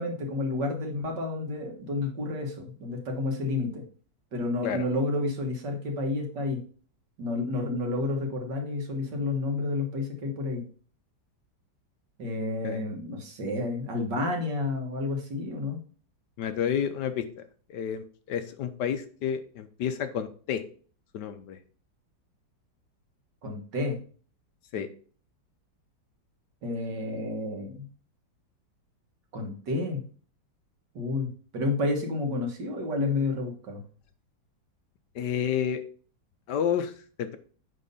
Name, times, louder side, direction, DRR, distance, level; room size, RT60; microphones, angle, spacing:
voice 1, 0.0-3.8 4.3-6.6 7.2-10.6 12.2-15.8 23.4-24.0 26.6-27.9 29.3-30.0 30.9-33.8, left 2 dB, 65° right, 2 dB, 2.3 m, -30 dB
voice 2, 16.4-17.2 17.7-20.6 21.1-21.6 24.7-24.9 35.1-35.8 36.5-36.9 37.2-37.4, left 8 dB, 70° left, 9 dB, 1.3 m, -30 dB
9.6 x 3.7 x 5.4 m, 0.42 s
omnidirectional pair, 2.1 m